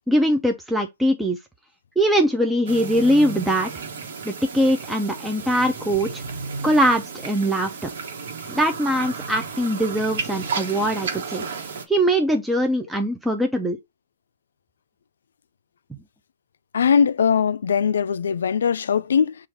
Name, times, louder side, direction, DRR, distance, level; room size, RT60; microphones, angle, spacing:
voice 1, 0.1-1.4 2.0-3.7 4.3-6.2 6.6-7.9 8.5-11.4 11.9-13.8, equal, 5° right, 0.4 m, -21 dB
sound 1, 2.7-11.8, right 5 dB, 75° right, 1.1 m, -33 dB
voice 2, 16.7-19.4, left 7 dB, 90° left, 0.3 m, -20 dB
5.0 x 2.4 x 4.4 m
hypercardioid pair, 155°, 0 cm